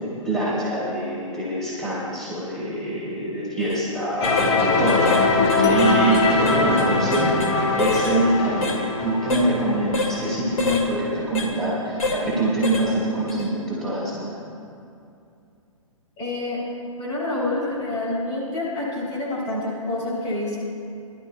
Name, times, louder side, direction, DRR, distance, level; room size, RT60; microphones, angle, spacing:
voice 1, 0.0-14.3, right 1 dB, 5° left, -9 dB, 3.6 m, -25 dB
sound 1, 3.6-3.8 4.2-4.5 4.9-5.2 5.5-7.5 7.8-8.1 8.6-8.8 9.3-9.5 9.9-10.1 10.6-10.9 11.3-11.5 12.0-12.2 12.6-12.9 13.3-13.4, left 3 dB, 75° left, 2.0 m, -27 dB
sound 2, 4.2-11.0, left 3 dB, 50° left, 2.0 m, -22 dB
voice 2, 16.2-16.6 17.0-20.6, left 2 dB, 25° left, -6 dB, 3.5 m, -27 dB
22.5 x 12.5 x 2.3 m, 2.6 s
figure-of-eight pair, 125°, 18 cm